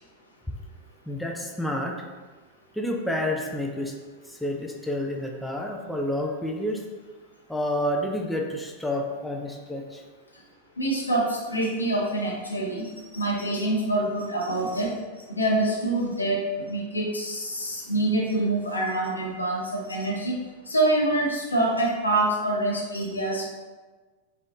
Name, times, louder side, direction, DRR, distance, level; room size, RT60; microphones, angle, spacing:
voice 1, 1.1-2.0 2.7-3.9 4.3-6.8 7.5-10.0, left 1 dB, 5° left, 0 dB, 0.3 m, -29 dB
voice 2, 10.8-12.8 13.1-14.9 15.3-20.4 20.7-23.5, right 2 dB, 80° left, -2 dB, 0.6 m, -26 dB
3.4 x 2.4 x 2.5 m, 1.3 s
figure-of-eight pair, 90°, 0 cm